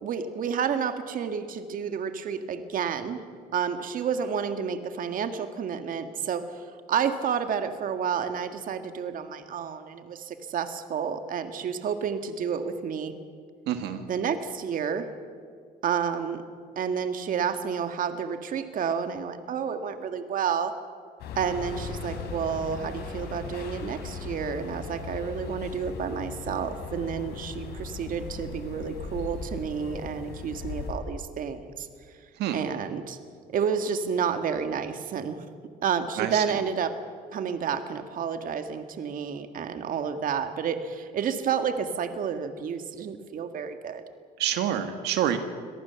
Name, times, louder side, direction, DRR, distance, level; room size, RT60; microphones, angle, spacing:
voice 1, 0.0-3.2 3.5-13.1 14.1-15.1 15.8-16.4 16.8-20.7 21.4-31.9 32.5-33.2 33.5-35.5 35.8-36.9 37.3-44.0, right 7 dB, 55° right, 8 dB, 1.8 m, -30 dB
voice 2, 13.7-14.0 32.4-32.7 36.2-36.6 44.4-45.4, right 10 dB, 80° right, 8 dB, 1.6 m, -27 dB
sound 1, 21.2-30.9, left 5 dB, 80° left, 4.1 m, -38 dB
25.0 x 18.5 x 7.0 m, 2.1 s
cardioid pair, 110°, 17 cm